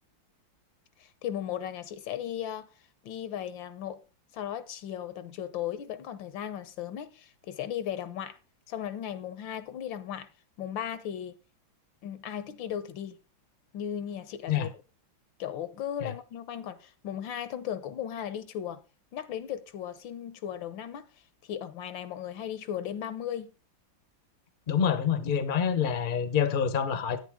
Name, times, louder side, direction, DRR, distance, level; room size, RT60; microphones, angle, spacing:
voice 1, 1.0-2.7 3.0-4.0 4.3-8.4 8.7-10.3 10.6-11.4 12.0-13.2 13.7-14.7 15.4-18.8 19.1-21.1 21.4-23.5, left 10 dB, 75° left, 1.5 m, -36 dB
voice 2, 24.7-27.2, left 7 dB, 35° left, 0.8 m, -27 dB
10.0 x 9.4 x 3.6 m
omnidirectional pair, 2.2 m